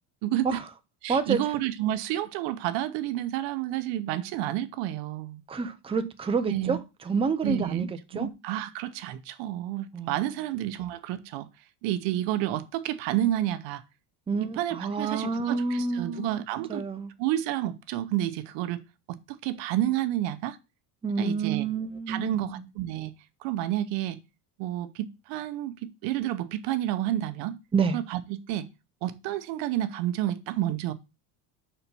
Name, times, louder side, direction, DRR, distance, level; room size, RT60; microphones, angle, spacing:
voice 1, 0.2-0.6 1.0-5.4 6.5-6.8 7.4-7.9 8.1-11.5 11.8-13.8 14.6-16.8 17.2-18.8 19.1-20.6 21.2-21.7 22.1-23.1 23.4-24.2 24.6-27.6 27.9-28.7 29.0-30.9, right 13 dB, 80° right, 0.9 m, -30 dB
voice 2, 5.5-8.3 9.9-10.1 14.3-16.4 16.7-17.1 21.0-22.7 27.7-28.0, right 5 dB, 15° right, 0.6 m, -28 dB
5.6 x 4.5 x 5.3 m
cardioid pair, 130°, 44 cm